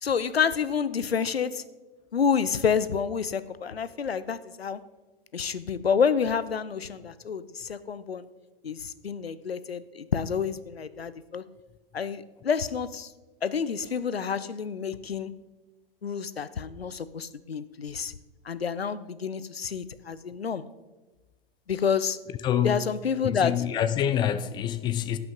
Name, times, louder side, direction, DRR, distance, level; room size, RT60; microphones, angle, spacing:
voice 1, 0.0-1.6 2.1-4.8 5.3-8.2 8.6-11.4 11.9-13.1 13.4-15.3 16.0-18.1 18.5-20.6 21.7-22.2 22.6-23.5, left 6 dB, 90° left, 0.6 m, -28 dB
voice 2, 22.4-22.8 23.2-25.2, left 10 dB, 15° left, 0.3 m, -26 dB
16.5 x 5.8 x 3.8 m
figure-of-eight pair, 105°, 30 cm